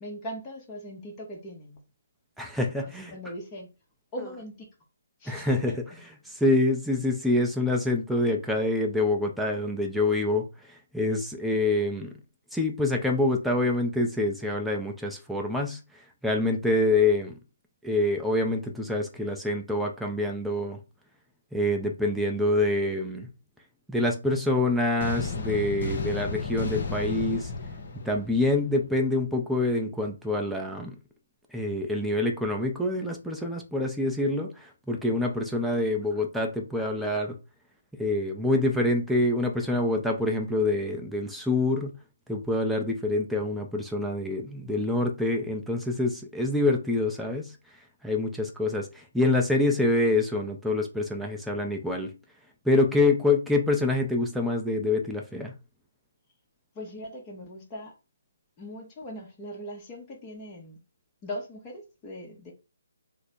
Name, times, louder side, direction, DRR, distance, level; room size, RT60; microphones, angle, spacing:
voice 1, 0.0-1.8 3.1-3.7 4.1-4.7 5.2-6.0 56.7-57.9 58.6-60.8 61.2-62.5, equal, 20° left, 0.9 m, -40 dB
voice 2, 2.4-3.1 5.3-5.7 6.3-10.4 10.9-12.2 12.5-15.8 16.2-17.4 17.8-20.8 21.5-23.3 23.9-27.5 28.0-30.9 31.5-37.4 37.9-41.9 42.3-47.6 48.0-52.1 52.6-55.5, left 2 dB, ahead, 0.5 m, -26 dB
sound 1, 25.0-29.0, left 4 dB, 50° left, 0.9 m, -33 dB
3.2 x 2.0 x 4.1 m
hypercardioid pair, 150°, 0 cm